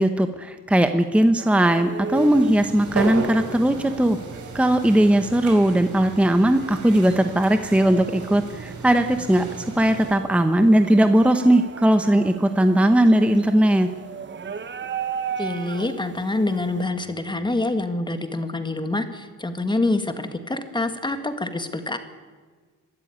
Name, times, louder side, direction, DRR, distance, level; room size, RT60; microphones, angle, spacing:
voice 1, 0.0-4.2 4.5-13.9, right 1 dB, 5° right, 8 dB, 1.0 m, -19 dB
sound 1, 1.4-16.9, right 6 dB, 35° right, 1.0 m, -37 dB
sound 2, 2.1-10.1, right 3 dB, 65° right, 3.7 m, -34 dB
voice 2, 15.4-22.0, left 2 dB, 15° left, 8 dB, 1.8 m, -26 dB
23.5 x 12.5 x 9.5 m, 1.5 s
cardioid pair, 120°, 33 cm